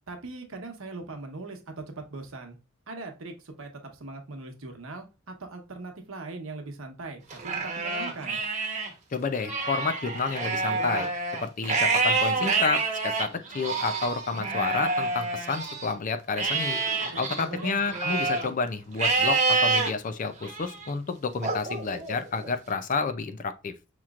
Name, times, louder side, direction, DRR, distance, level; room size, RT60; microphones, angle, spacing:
voice 1, 0.1-2.6 2.9-8.4 17.0-17.8, right 3 dB, 75° right, 1.0 m, -40 dB
Livestock farm animals working animals, 7.3-8.9 9.3-15.9 16.4-18.5 19.0-19.9 20.4-20.9 21.4-22.5, right 3 dB, 35° right, 1.0 m, -27 dB
voice 2, 9.1-11.1 11.4-16.8 17.2-23.8, left 4 dB, 40° left, 0.4 m, -30 dB
5.6 x 3.0 x 2.4 m
head